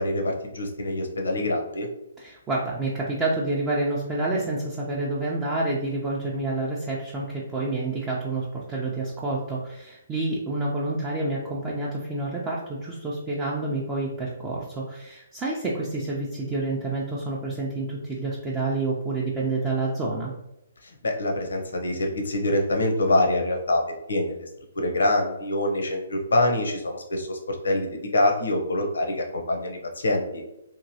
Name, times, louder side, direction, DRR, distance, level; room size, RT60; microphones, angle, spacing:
voice 1, 0.0-1.9 20.8-23.8 24.1-24.5 24.7-30.4, left 1 dB, 80° left, 2 dB, 0.7 m, -25 dB
voice 2, 2.2-20.3, right 2 dB, 15° right, -5 dB, 0.5 m, -28 dB
3.0 x 2.6 x 2.7 m, 0.88 s
hypercardioid pair, 145°, 0 cm